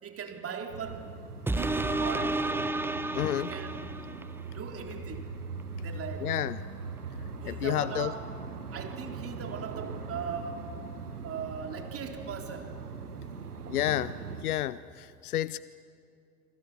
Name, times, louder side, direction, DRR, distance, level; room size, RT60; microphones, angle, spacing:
voice 1, 0.0-1.1 1.5-2.6 3.4-4.2 4.4-5.4 5.8-6.3 7.4-8.2 8.7-10.7 11.2-12.8, right 6 dB, 30° right, 3 dB, 3.7 m, -39 dB
sound 1, 0.7-14.4, right 4 dB, 85° right, 1.5 m, -41 dB
sound 2, 1.5-4.4 4.9-5.0, right 2 dB, 5° right, 1.0 m, -31 dB
voice 2, 3.1-3.5 6.2-6.6 7.5-8.1 13.7-14.1 14.4-15.6, left 13 dB, 80° left, 18 dB, 0.7 m, -30 dB
27.5 x 25.5 x 7.4 m, 2.5 s
figure-of-eight pair, 80°, 44 cm